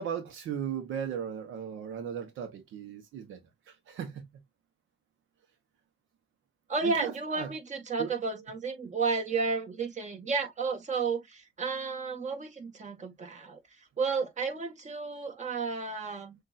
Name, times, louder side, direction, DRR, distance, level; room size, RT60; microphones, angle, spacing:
voice 1, 0.0-3.4 3.7-4.2 6.8-7.5 8.0-8.2, right 8 dB, 80° right, 0.9 m, -37 dB
voice 2, 6.7-13.6 14.0-16.3, right 4 dB, 35° right, 1.7 m, -32 dB
6.5 x 2.5 x 2.4 m
cardioid pair, 90°, 20 cm